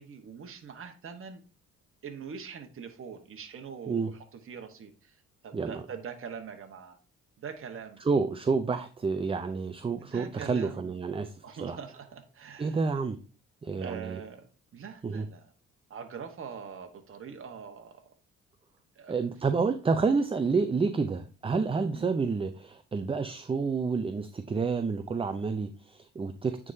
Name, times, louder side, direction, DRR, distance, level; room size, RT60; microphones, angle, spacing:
voice 1, 0.0-1.4 2.0-5.1 5.4-7.0 7.4-8.0 10.1-10.9 11.4-12.8 13.8-14.5 14.7-15.5 15.9-18.1 19.0-19.1 21.9-22.1, right 6 dB, 45° right, 5 dB, 1.2 m, -43 dB
voice 2, 5.5-5.8 8.0-11.3 11.6-11.8 12.6-13.2 13.6-14.2 15.0-15.3 19.1-26.7, right 4 dB, 20° right, 9 dB, 0.4 m, -29 dB
9.5 x 3.7 x 2.7 m, 0.37 s
cardioid pair, 90°, 30 cm